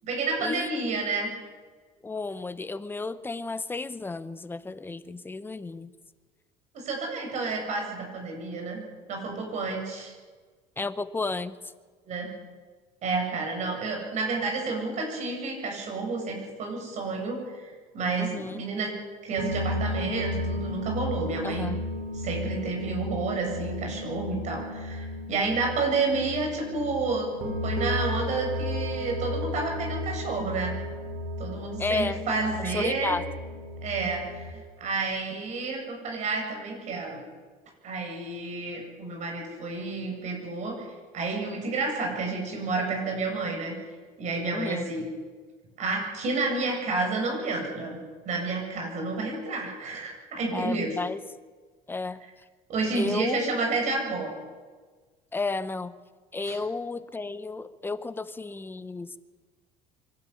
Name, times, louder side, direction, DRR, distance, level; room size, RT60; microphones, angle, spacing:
voice 1, 0.0-1.3 6.7-10.1 12.1-12.3 13.0-18.9 19.2-21.7 22.1-30.8 31.4-33.2 33.8-37.2 37.8-40.9 41.1-43.7 44.2-45.0 45.8-48.0 48.3-51.0 52.7-54.3 56.4-56.6, right 3 dB, 50° right, 1 dB, 8.0 m, -30 dB
voice 2, 2.0-5.9 10.8-11.6 18.2-18.6 21.4-21.8 31.8-32.2 32.6-33.2 44.5-44.9 50.5-51.2 51.9-52.2 52.9-53.5 55.3-55.9 56.3-59.2, left 3 dB, 15° left, 13 dB, 1.0 m, -32 dB
sound 1, 19.4-34.5, left 1 dB, 70° right, 4.7 m, -34 dB
24.0 x 13.0 x 10.0 m, 1.4 s
cardioid pair, 135°, 16 cm